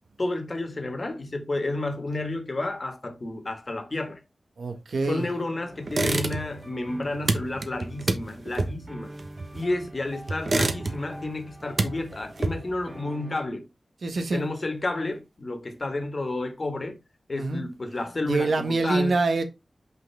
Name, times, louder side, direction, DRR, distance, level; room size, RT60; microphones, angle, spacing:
voice 1, 0.2-4.2 5.0-9.1 9.5-13.7 14.3-17.0 17.3-19.2, left 2 dB, 40° left, 1.7 m, -31 dB
voice 2, 4.6-5.2 14.0-14.4 17.3-17.6 18.2-19.4, right 3 dB, 75° right, 1.4 m, -25 dB
sound 1, 5.1-13.5, right 1 dB, 25° right, 1.5 m, -45 dB
sound 2, 5.9-6.7 6.9-9.9 10.3-11.2 11.5-12.9, right 3 dB, 55° right, 1.1 m, -28 dB
5.8 x 5.7 x 3.5 m
wide cardioid pair, 105°, 0 cm